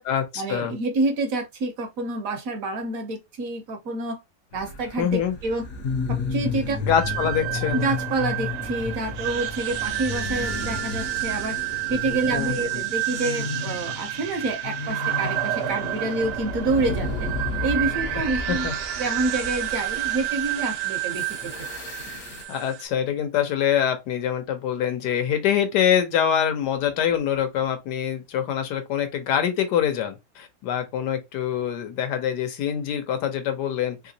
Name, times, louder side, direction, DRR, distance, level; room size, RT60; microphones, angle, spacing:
voice 1, 0.4-4.2 4.5-5.6 6.1-6.8 7.7-11.6 11.9-17.3 17.6-18.7 19.0-21.5, right 2 dB, 65° right, 0.9 m, -28 dB
sound 1, 4.5-22.4, left 4 dB, 65° left, 1.0 m, -33 dB
voice 2, 5.0-5.4 6.8-7.9 12.3-12.8 18.5-18.7 22.5-34.0, left 9 dB, 80° left, 1.3 m, -25 dB
sound 2, 6.9-22.9, right 13 dB, 90° right, 1.2 m, -30 dB
3.2 x 2.9 x 2.7 m
omnidirectional pair, 1.8 m